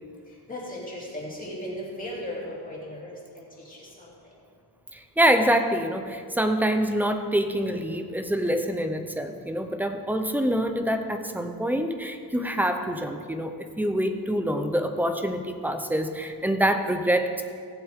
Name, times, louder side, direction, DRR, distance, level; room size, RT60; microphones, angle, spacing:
voice 1, 0.5-4.1, left 1 dB, 20° left, -5 dB, 2.9 m, -37 dB
voice 2, 4.9-17.4, equal, 5° right, 6 dB, 0.8 m, -26 dB
18.5 x 7.8 x 3.7 m, 2.2 s
wide cardioid pair, 130°, 39 cm